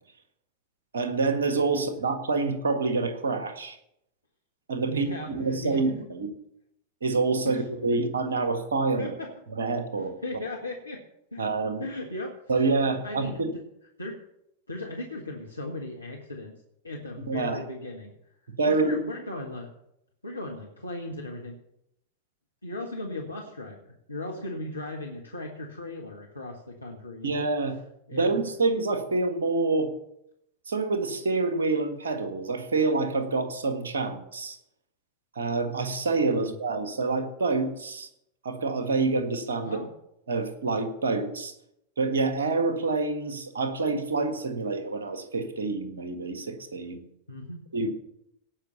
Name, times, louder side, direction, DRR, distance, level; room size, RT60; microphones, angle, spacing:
voice 1, 0.9-3.8 4.7-6.3 7.0-9.1 9.5-10.1 11.4-11.8 12.5-13.5 17.3-17.6 18.6-19.0 27.2-27.8 28.1-29.9 30.7-34.6 35.3-38.1 38.4-39.8 40.3-41.5 42.0-47.0 47.7-47.9, right 3 dB, 70° right, 8 dB, 1.6 m, -27 dB
voice 2, 4.9-6.0 7.4-7.6 7.9-8.0 9.0-9.3 10.0-11.0 11.3-11.5 11.8-12.3 12.8-13.6 14.0-14.2 14.7-16.5 16.8-18.1 18.7-19.7 20.2-21.6 22.6-27.5 28.1-28.4 36.4-36.5 39.6-39.9 47.3-47.9, left 1 dB, 80° left, 0 dB, 1.5 m, -37 dB
17.5 x 6.0 x 6.9 m, 0.78 s
figure-of-eight pair, 90°, 0 cm